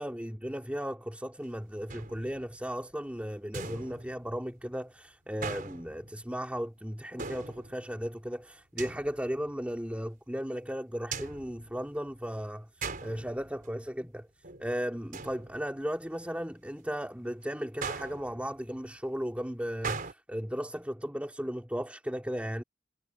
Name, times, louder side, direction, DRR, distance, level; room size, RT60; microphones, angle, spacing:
voice 1, 0.0-14.3 14.6-22.6, equal, 5° right, 3.6 m, -36 dB
sound 1, 1.9-2.7 3.5-4.6 5.4-6.4 7.2-8.1 8.8-9.5 11.1-12.3 12.8-13.9 14.2-14.7 15.1-16.0 17.8-18.8 19.8-20.1, right 4 dB, 45° right, 4.1 m, -41 dB
head